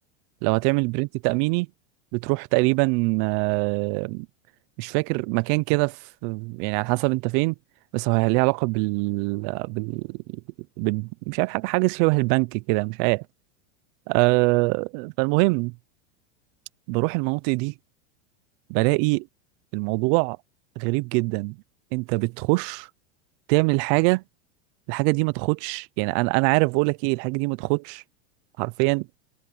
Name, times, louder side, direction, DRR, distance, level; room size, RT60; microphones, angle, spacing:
voice 1, 0.4-1.7 2.1-4.3 4.8-7.5 7.9-10.4 10.8-13.2 14.1-15.7 16.9-17.7 18.7-19.3 19.7-20.4 20.8-21.6 21.9-22.9 23.5-24.2 24.9-28.0 28.6-29.1, right 27 dB, 45° right, 0.6 m, -23 dB
supercardioid pair, 145°, 35 cm